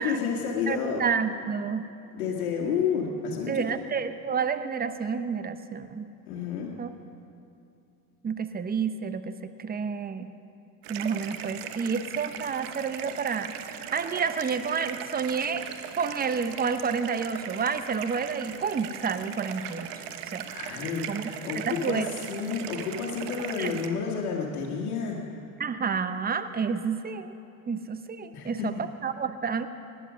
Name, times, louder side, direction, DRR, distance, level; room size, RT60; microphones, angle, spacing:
voice 1, 0.0-1.0 2.1-3.8 6.3-6.7 20.5-25.2 28.3-28.7, left 6 dB, 85° left, -3 dB, 1.9 m, -30 dB
voice 2, 0.7-1.8 3.5-6.1 6.8-6.9 8.2-10.3 10.9-15.7 16.0-19.9 20.3-20.5 21.1-21.2 21.5-22.1 23.6-23.7 25.6-27.4 27.7-29.7, right 6 dB, 20° right, 11 dB, 0.9 m, -30 dB
sound 1, 10.8-23.9, right 9 dB, 70° right, 1.2 m, -39 dB
18.5 x 11.0 x 6.3 m, 2.6 s
supercardioid pair, 80°, 43 cm